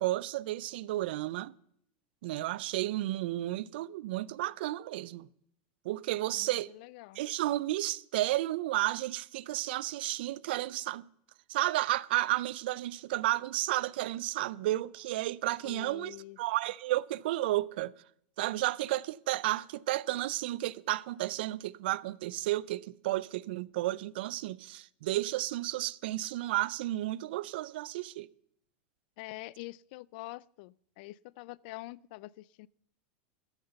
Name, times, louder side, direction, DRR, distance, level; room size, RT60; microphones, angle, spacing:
voice 1, 0.0-1.5 2.2-5.3 5.8-6.7 7.2-11.0 11.5-17.9 18.4-28.3, right 16 dB, 75° right, 0.4 m, -32 dB
voice 2, 6.3-7.2 15.6-16.4 29.2-32.7, left 19 dB, 60° left, 0.4 m, -46 dB
13.5 x 5.9 x 6.9 m
supercardioid pair, 130°, 6 cm